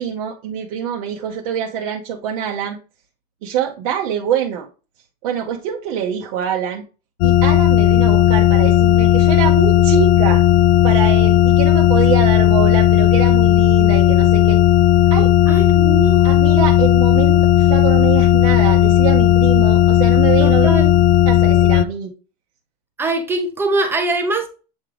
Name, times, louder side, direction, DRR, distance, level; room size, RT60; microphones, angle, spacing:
voice 1, 0.0-2.8 3.4-4.7 5.2-6.8 7.2-10.4 10.8-14.6 15.1-15.3 16.2-20.7 21.3-22.1, right 9 dB, 55° right, 0.9 m, -24 dB
sound 1, 7.2-21.8, left 12 dB, 45° left, 0.4 m, -13 dB
voice 2, 15.5-16.2 20.4-21.0 23.0-24.5, right 2 dB, 10° right, 0.7 m, -22 dB
8.2 x 3.7 x 3.3 m
supercardioid pair, 170°, 21 cm